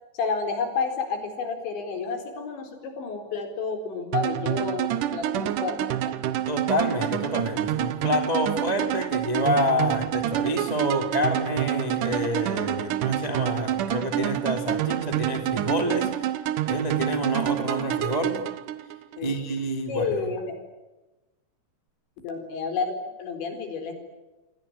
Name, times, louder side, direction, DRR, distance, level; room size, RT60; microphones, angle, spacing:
voice 1, 0.1-6.2 19.2-19.3 19.9-20.5 22.2-22.9 23.2-23.9, left 5 dB, 70° left, 7 dB, 6.5 m, -30 dB
sound 1, 4.1-19.2, right 12 dB, 85° right, 1.8 m, -28 dB
voice 2, 6.5-16.4 16.6-18.4 19.2-20.1, equal, 10° right, 5 dB, 2.0 m, -28 dB
28.5 x 22.5 x 8.8 m, 1.1 s
omnidirectional pair, 5.3 m